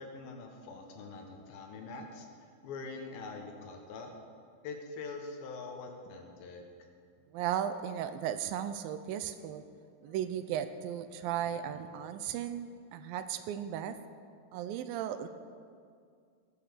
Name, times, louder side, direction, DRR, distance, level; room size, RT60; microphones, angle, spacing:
voice 1, 0.0-2.3 2.6-4.1 4.6-6.6 10.0-10.2, left 4 dB, 75° left, 3 dB, 3.0 m, -44 dB
voice 2, 7.3-9.6 10.0-14.0 14.5-15.3, right 10 dB, 80° right, 10 dB, 2.2 m, -36 dB
18.5 x 7.0 x 6.7 m, 2.2 s
omnidirectional pair, 4.4 m